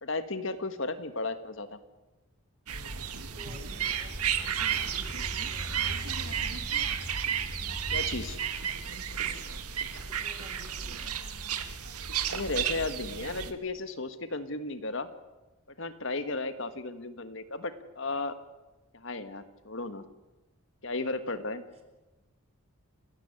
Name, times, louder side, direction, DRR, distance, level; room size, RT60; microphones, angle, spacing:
voice 1, 0.0-1.8 7.9-8.4 12.3-15.1 15.8-18.3 18.9-20.0 20.8-21.6, left 3 dB, 55° left, 11 dB, 1.6 m, -34 dB
sound 1, 2.7-13.5, right 8 dB, 90° right, 2.0 m, -33 dB
sound 2, 2.8-8.3, equal, 10° left, 5.5 m, -43 dB
voice 2, 3.3-6.6 10.0-11.2 21.7-21.8, right 1 dB, 25° right, 6 dB, 4.0 m, -53 dB
30.0 x 13.5 x 9.9 m, 1.1 s
head